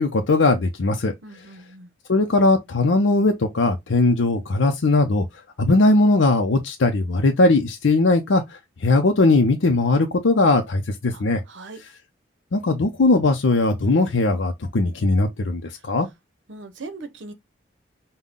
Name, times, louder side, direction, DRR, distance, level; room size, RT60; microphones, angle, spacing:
voice 1, 0.0-1.1 2.1-5.3 5.6-11.4 12.5-16.1, left 2 dB, 85° left, 0.6 m, -19 dB
voice 2, 1.2-1.9 11.1-11.8 15.7-15.8 16.5-17.3, right 3 dB, 80° right, 0.9 m, -40 dB
5.5 x 2.2 x 3.6 m
head